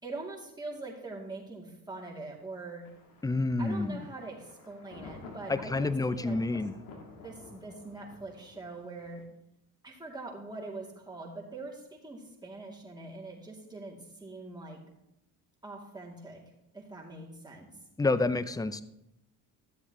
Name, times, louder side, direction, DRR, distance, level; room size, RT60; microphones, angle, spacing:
voice 1, 0.0-2.9 3.6-6.6 7.2-9.2 9.8-14.8 15.6-16.4 16.7-17.7, right 2 dB, 10° right, -3 dB, 2.7 m, -43 dB
Thunder, 2.8-9.2, left 3 dB, 90° left, 1.7 m, -50 dB
voice 2, 3.2-4.0 5.5-6.7 18.0-18.8, left 3 dB, 10° left, 14 dB, 0.5 m, -29 dB
13.0 x 7.7 x 3.1 m, 0.86 s
supercardioid pair, 70°, 43 cm